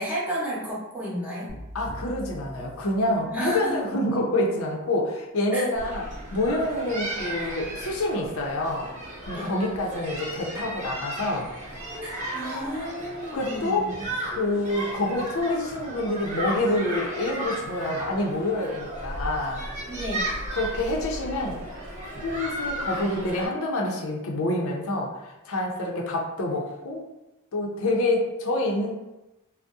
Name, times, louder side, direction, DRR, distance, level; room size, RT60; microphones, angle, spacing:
voice 1, 0.0-1.5 3.3-3.7 5.5-5.6 9.3-9.5 12.0-14.1 19.9-20.3, right 1 dB, 5° right, -7 dB, 0.8 m, -32 dB
sound 1, 1.5-3.6, equal, 25° left, 1.0 m, -42 dB
voice 2, 1.7-6.1 6.3-8.9 9.3-11.5 13.3-13.9 14.2-19.6 20.5-21.6 22.2-27.0 27.5-28.9, left 1 dB, 75° left, -1 dB, 0.6 m, -27 dB
sound 2, 5.7-23.5, right 1 dB, 35° right, 0.9 m, -35 dB
2.6 x 2.1 x 3.4 m, 0.99 s
head